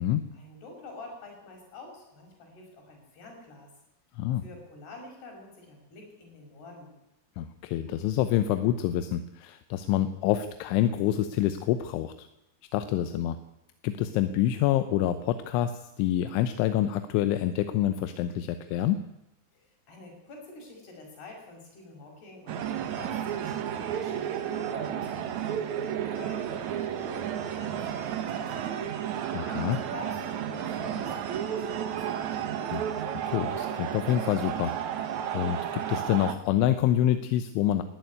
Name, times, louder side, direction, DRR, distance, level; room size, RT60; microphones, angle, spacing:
voice 1, 0.3-3.7 4.4-6.9 19.5-29.2 29.8-32.4, left 2 dB, 60° left, 2 dB, 7.4 m, -47 dB
voice 2, 7.4-12.3 12.7-13.4 13.8-19.1 29.3-29.8 32.7-32.9 33.3-34.7 35.3-37.8, left 12 dB, 85° left, 10 dB, 3.3 m, -27 dB
sound 1, 22.5-36.3, right 9 dB, 75° right, 1.7 m, -32 dB
19.5 x 14.5 x 9.5 m, 0.92 s
omnidirectional pair, 5.3 m